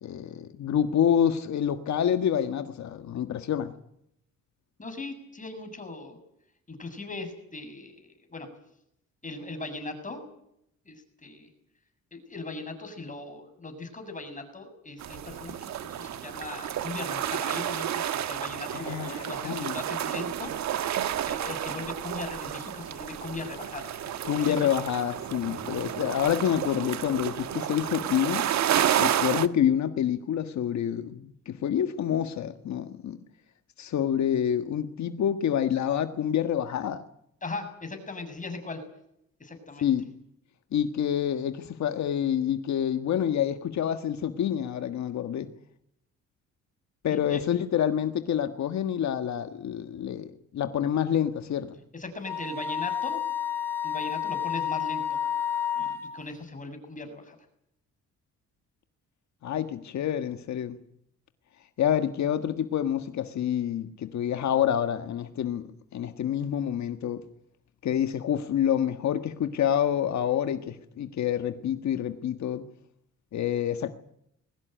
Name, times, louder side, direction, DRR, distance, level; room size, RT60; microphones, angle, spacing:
voice 1, 0.0-3.7 18.7-19.7 24.2-28.5 29.0-33.2 33.8-37.0 39.8-40.1 40.7-45.5 47.0-51.7 59.4-60.8 61.8-65.6 65.9-67.2 67.8-72.6 73.3-73.9, left 9 dB, 65° left, 8 dB, 1.6 m, -27 dB
voice 2, 4.8-6.2 6.7-8.5 9.2-10.2 10.9-11.5 12.1-20.5 21.2-23.9 24.4-24.6 25.5-25.8 37.4-38.8 39.4-39.9 47.1-47.4 51.9-53.2 53.8-55.2 55.8-57.4, left 3 dB, 25° left, 7 dB, 7.2 m, -39 dB
sound 1, 15.0-29.5, right 10 dB, 65° right, 1.3 m, -31 dB
Wind instrument woodwind instrument, 52.2-56.1, left 9 dB, 5° left, 6.0 m, -30 dB
22.0 x 18.0 x 9.3 m, 0.75 s
cardioid pair, 90°, 30 cm